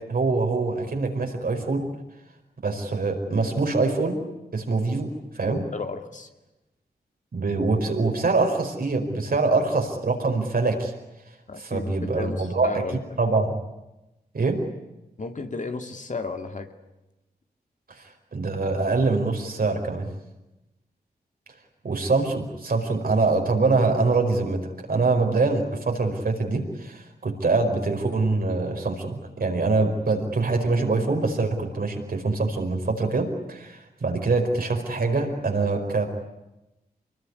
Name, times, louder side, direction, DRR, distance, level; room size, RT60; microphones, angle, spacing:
voice 1, 0.0-1.9 2.6-4.2 4.5-5.6 7.3-10.9 11.6-12.7 13.2-13.6 14.3-14.6 17.9-18.0 18.3-20.1 21.8-36.1, right 3 dB, 65° right, 3 dB, 5.0 m, -24 dB
voice 2, 5.5-6.3 11.5-13.0 15.2-16.7, left 3 dB, 50° left, 6 dB, 2.3 m, -33 dB
24.5 x 20.5 x 9.8 m, 0.98 s
cardioid pair, 45°, 17 cm